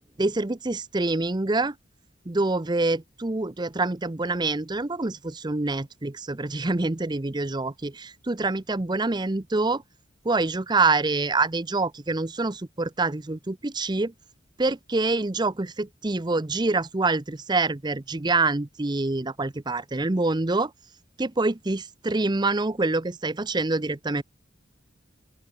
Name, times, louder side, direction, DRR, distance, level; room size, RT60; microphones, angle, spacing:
voice 1, 0.2-1.7 2.3-9.8 10.2-14.1 14.6-20.7 21.2-24.2, right 3 dB, 20° right, 0.7 m, -26 dB
open air
head